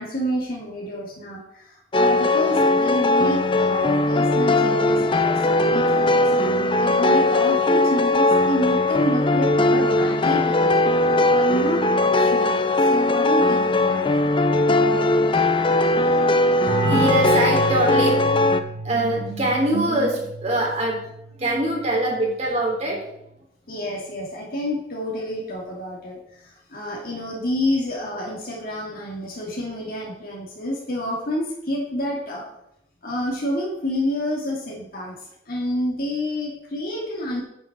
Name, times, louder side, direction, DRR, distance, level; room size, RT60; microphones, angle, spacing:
voice 1, 0.0-14.3 23.7-32.4 33.0-35.2 35.5-37.4, left 1 dB, 55° left, -3 dB, 2.6 m, -29 dB
sound 1, 1.9-18.6, left 2 dB, 30° left, 0.6 m, -19 dB
voice 2, 16.6-18.1 18.8-21.0 21.4-23.0, right 1 dB, 40° right, -2 dB, 3.7 m, -23 dB
sound 2, 16.7-22.1, right 1 dB, 60° right, 4.1 m, -31 dB
9.2 x 5.9 x 7.5 m, 0.78 s
head